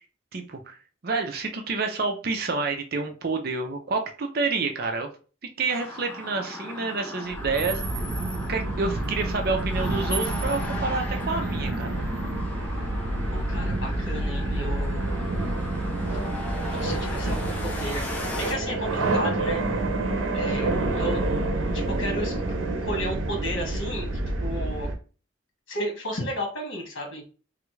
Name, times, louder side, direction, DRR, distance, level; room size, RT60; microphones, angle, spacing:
voice 1, 0.3-0.8 1.0-5.1 5.6-7.8 8.5-11.9, right 3 dB, 50° right, 4 dB, 0.5 m, -28 dB
sound 1, 5.7-18.5, left 1 dB, 10° left, 0.5 m, -37 dB
sound 2, 7.3-24.9, right 2 dB, 90° right, 0.7 m, -28 dB
voice 2, 13.3-15.4 16.3-16.4 16.7-19.6 20.3-21.2 21.7-22.3 22.8-24.1 24.4-24.9 25.7-27.2, equal, 85° left, 1 dB, 1.3 m, -33 dB
3.2 x 2.4 x 3.1 m, 0.36 s
head